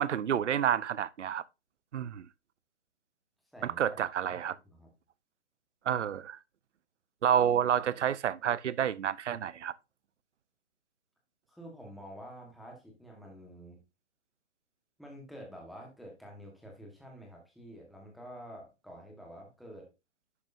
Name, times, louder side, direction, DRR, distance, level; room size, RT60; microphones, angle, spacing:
voice 1, 0.0-1.4 1.9-2.2 3.6-4.5 5.9-6.4 7.2-9.7, right 9 dB, 85° right, 0.7 m, -29 dB
voice 2, 3.5-4.4 4.6-4.9 11.5-13.8 15.0-19.9, equal, ahead, 1.3 m, -49 dB
11.0 x 6.3 x 2.6 m
hypercardioid pair, 170°, 35 cm